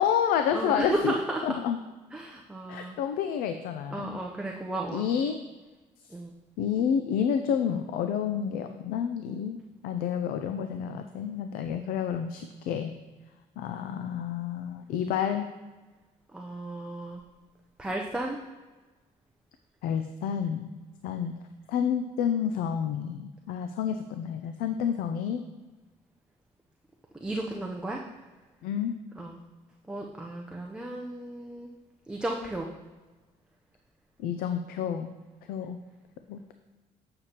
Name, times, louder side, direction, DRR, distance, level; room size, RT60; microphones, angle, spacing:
voice 1, 0.0-1.1 1.4-1.8 2.7-4.2 4.9-5.4 6.6-9.6 9.8-12.9 13.6-15.5 19.8-20.7 21.0-21.4 21.7-25.5 28.6-29.0 34.2-35.1 35.5-35.8 36.3-36.4, left 8 dB, 85° left, 7 dB, 0.4 m, -29 dB
voice 2, 0.5-1.0 1.3-1.4 2.1-3.0 3.9-5.0 6.1-6.3 16.3-17.2 17.8-18.4 27.2-28.0 29.2-29.4 29.9-31.7 32.1-32.7, right 1 dB, 5° right, -1 dB, 0.6 m, -34 dB
8.1 x 6.7 x 2.9 m, 1.2 s
cardioid pair, 125°, 14 cm